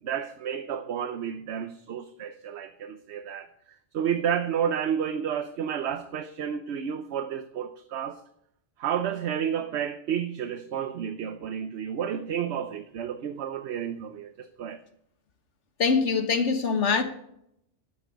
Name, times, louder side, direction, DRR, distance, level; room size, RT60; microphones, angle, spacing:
voice 1, 0.0-8.2 8.8-14.8, right 8 dB, 70° right, 1.0 m, -31 dB
voice 2, 15.8-17.0, left 5 dB, 85° left, 1.6 m, -23 dB
12.0 x 8.6 x 5.2 m
omnidirectional pair, 1.2 m